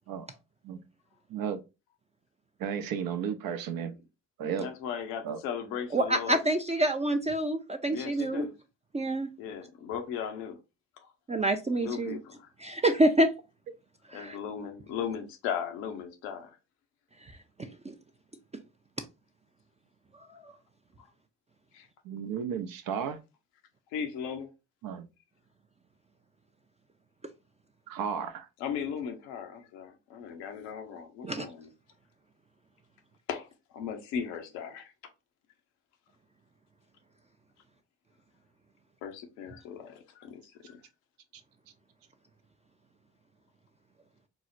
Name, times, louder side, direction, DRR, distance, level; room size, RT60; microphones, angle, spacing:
voice 1, 2.6-4.0 4.4-4.7 5.2-5.4 22.0-23.2 24.8-25.1 27.9-28.5, right 7 dB, 70° right, 0.7 m, -33 dB
voice 2, 4.6-6.4 7.9-8.5 9.4-10.6 11.0-11.1 11.8-12.5 14.1-16.6 21.0-21.1 21.7-21.9 23.9-24.5 28.6-31.7 33.3-33.5 33.7-34.9 39.0-40.8, left 7 dB, 85° left, 0.7 m, -37 dB
voice 3, 5.9-8.4 8.9-9.3 11.3-12.2 12.6-13.3 14.1-14.4 17.6-17.9 31.2-31.4, right 1 dB, 20° right, 0.4 m, -27 dB
4.6 x 2.0 x 2.5 m
hypercardioid pair, 50°, 36 cm